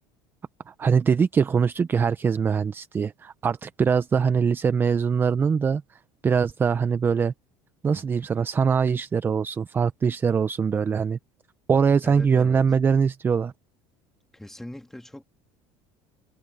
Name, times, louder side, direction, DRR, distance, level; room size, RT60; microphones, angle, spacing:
voice 1, 0.7-5.8 6.2-7.3 7.8-11.2 11.7-13.5, right 6 dB, 20° right, 0.6 m, -22 dB
voice 2, 12.0-12.6 14.3-15.2, left 1 dB, 5° left, 2.8 m, -41 dB
cardioid pair, 130°, 10 cm